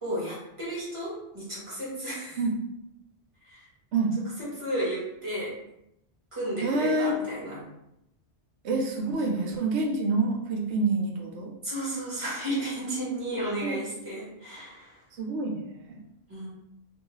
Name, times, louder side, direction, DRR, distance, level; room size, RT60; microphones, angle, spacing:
voice 1, 0.0-2.4 3.4-3.6 4.4-5.5 6.3-7.7 11.6-15.0 16.3-16.5, right 1 dB, 30° right, -7 dB, 1.3 m, -33 dB
voice 2, 6.6-7.2 8.6-11.5 13.6-13.8 15.1-16.0, right 3 dB, 75° right, 1 dB, 0.9 m, -27 dB
2.6 x 2.3 x 3.0 m, 0.82 s
omnidirectional pair, 1.1 m